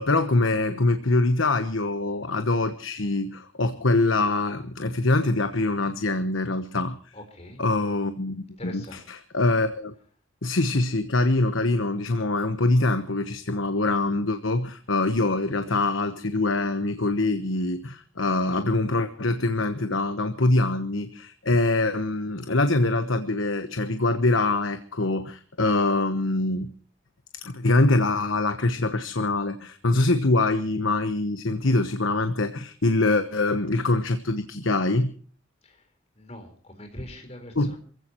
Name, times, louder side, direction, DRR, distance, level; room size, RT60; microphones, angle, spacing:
voice 1, 0.0-7.1 7.6-9.9 10.4-26.7 27.4-35.1 37.5-37.7, left 2 dB, 80° left, 9 dB, 1.2 m, -24 dB
voice 2, 7.1-7.6 8.6-9.0 36.2-37.8, left 1 dB, 30° left, 5 dB, 4.3 m, -41 dB
27.5 x 16.0 x 3.0 m, 0.43 s
head